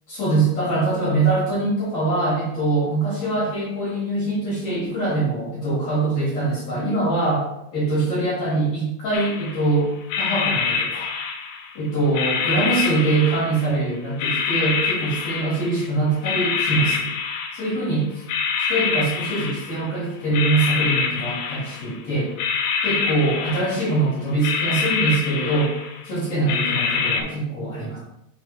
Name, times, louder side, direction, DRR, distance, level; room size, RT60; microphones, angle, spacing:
voice 1, 0.1-9.9 10.2-11.1 11.7-17.1 17.5-18.2 18.6-22.3 22.8-25.7 26.0-28.0, right 2 dB, 50° left, -8 dB, 2.3 m, -23 dB
sound 1, 9.1-9.7 10.1-11.8 12.1-13.8 14.2-15.8 16.2-17.9 18.3-20.0 20.3-22.0 22.4-24.0 24.4-26.1 26.5-27.2, left 5 dB, 85° left, 2.3 m, -25 dB
6.2 x 4.7 x 3.3 m, 0.85 s
omnidirectional pair, 5.1 m